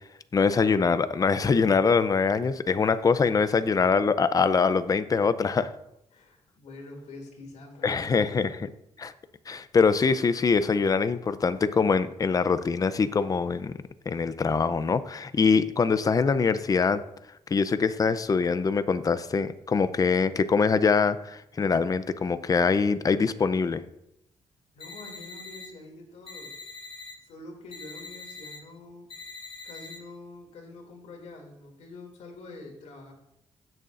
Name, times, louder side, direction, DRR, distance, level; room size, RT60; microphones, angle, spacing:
voice 1, 0.3-5.7 7.8-8.7 9.0-9.1 9.5-13.7 14.1-17.0 17.5-23.8, left 5 dB, 30° left, 13 dB, 0.6 m, -23 dB
voice 2, 6.1-8.5 24.7-26.6 27.2-29.1 29.6-33.1, left 2 dB, 80° left, 0 dB, 2.7 m, -46 dB
sound 1, 24.8-25.7 26.3-27.1 27.7-28.6 29.1-30.0, left 4 dB, 50° left, 4.2 m, -43 dB
16.5 x 6.8 x 2.6 m, 0.82 s
cardioid pair, 105°, 11 cm